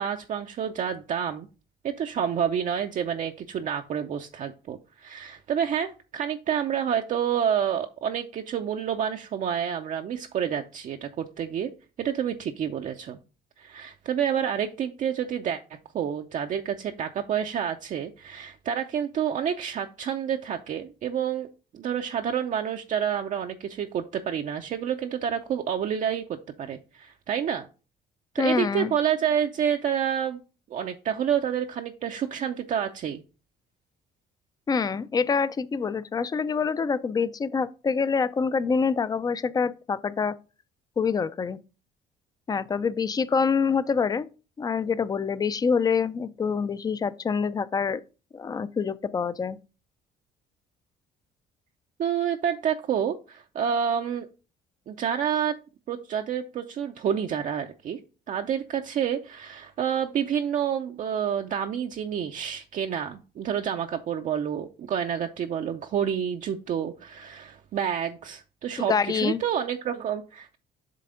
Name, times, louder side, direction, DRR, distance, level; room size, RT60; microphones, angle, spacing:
voice 1, 0.0-1.5 1.8-11.7 12.0-13.2 13.6-21.5 21.7-26.2 26.6-27.7 28.3-30.4 30.7-33.2 52.0-54.3 54.9-55.6 55.9-58.0 58.3-70.6, right 8 dB, 50° right, 0.5 m, -28 dB
voice 2, 28.4-28.9 34.7-40.4 41.0-41.6 42.5-44.3 44.6-48.0 48.3-49.6 68.8-69.4, left 5 dB, 25° left, 0.4 m, -26 dB
7.6 x 3.4 x 5.0 m
cardioid pair, 110°, 17 cm